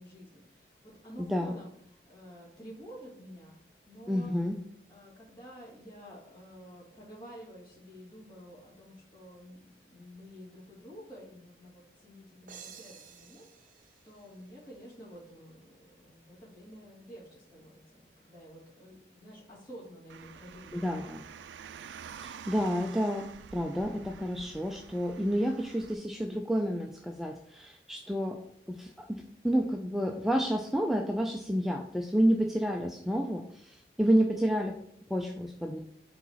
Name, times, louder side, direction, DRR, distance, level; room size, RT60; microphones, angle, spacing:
voice 1, 0.0-4.3 4.9-13.8 14.0-21.0, equal, 25° left, -8 dB, 2.3 m, -50 dB
voice 2, 1.2-1.5 4.1-4.6 20.7-21.2 22.2-28.4 28.7-29.1 29.4-34.8 35.1-35.8, equal, ahead, 2 dB, 0.3 m, -30 dB
sound 1, 12.5-15.1, right 7 dB, 45° right, 0.6 m, -53 dB
Car, 20.1-25.9, right 7 dB, 85° right, 0.3 m, -48 dB
4.8 x 4.0 x 5.6 m, 0.69 s
head